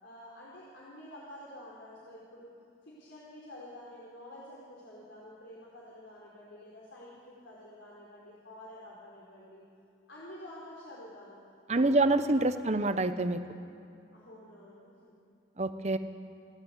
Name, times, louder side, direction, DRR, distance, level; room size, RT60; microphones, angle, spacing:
voice 1, 0.0-2.5 3.0-9.6 10.1-11.4 11.7-12.2 12.5-12.9 14.1-15.1, left 1 dB, 80° left, -6 dB, 4.3 m, -49 dB
voice 2, 11.7-13.4 15.6-16.0, right 2 dB, 35° right, 10 dB, 0.9 m, -26 dB
30.0 x 13.0 x 8.2 m, 2.7 s
head